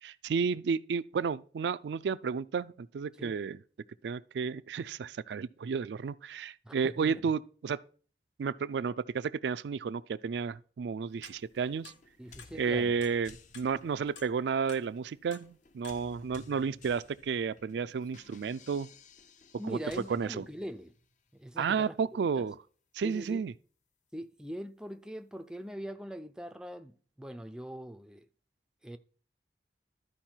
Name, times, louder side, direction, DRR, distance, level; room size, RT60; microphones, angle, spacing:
voice 1, 0.0-3.6 4.0-7.8 8.4-11.9 12.5-18.9 19.6-19.8 20.1-20.4 21.6-22.6 22.9-23.5, right 6 dB, 75° right, 0.3 m, -32 dB
voice 2, 6.6-7.2 12.2-13.0 19.6-20.9 21.3-22.0 22.3-22.5 23.0-23.4 24.1-28.3 28.8-29.0, equal, 5° right, 0.4 m, -42 dB
sound 1, 11.2-11.4 11.8-12.0 12.4-12.6 13.0-13.8 14.2-14.3 14.6-14.9 15.3-15.5 15.8-16.0, left 6 dB, 90° left, 0.9 m, -51 dB
sound 2, 11.2-21.1, left 3 dB, 45° left, 0.6 m, -56 dB
12.5 x 4.7 x 4.4 m
head